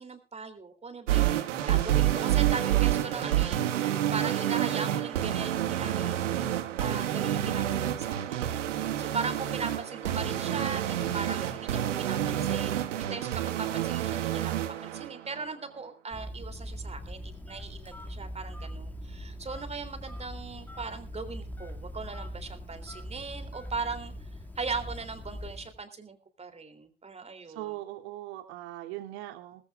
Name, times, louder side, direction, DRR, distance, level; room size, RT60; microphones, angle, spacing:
voice 1, 0.0-13.3 13.6-14.5 14.8-24.3 24.5-27.7, right 4 dB, 15° right, 9 dB, 3.2 m, -39 dB
sound 1, 1.1-15.1, right 12 dB, 75° right, 1.9 m, -28 dB
Telephone, 16.1-25.8, equal, 5° left, 2.1 m, -41 dB
voice 2, 27.4-29.6, right 15 dB, 60° right, 4 dB, 3.1 m, -40 dB
20.0 x 15.0 x 2.5 m, 0.29 s
hypercardioid pair, 90°, 36 cm